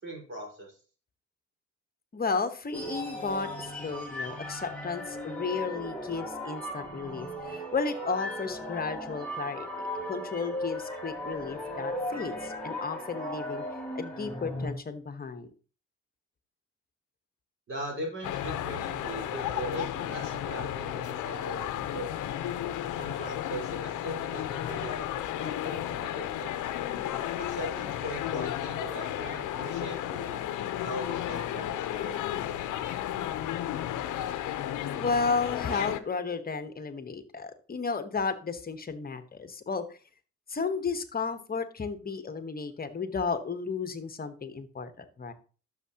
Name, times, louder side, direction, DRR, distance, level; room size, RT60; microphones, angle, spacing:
voice 1, 0.0-0.8 17.7-22.3 23.0-26.5 27.4-30.4 30.8-32.1, right 1 dB, 40° right, -1 dB, 4.9 m, -40 dB
voice 2, 2.1-9.7 10.1-13.6 13.9-15.5 34.9-39.8 40.5-45.3, left 4 dB, 30° left, 9 dB, 1.2 m, -33 dB
sound 1, 2.7-14.7, left 1 dB, 5° left, 3.6 m, -37 dB
sound 2, 18.2-36.0, left 11 dB, 85° left, 0.8 m, -33 dB
12.5 x 6.7 x 2.9 m, 0.37 s
cardioid pair, 90°, 30 cm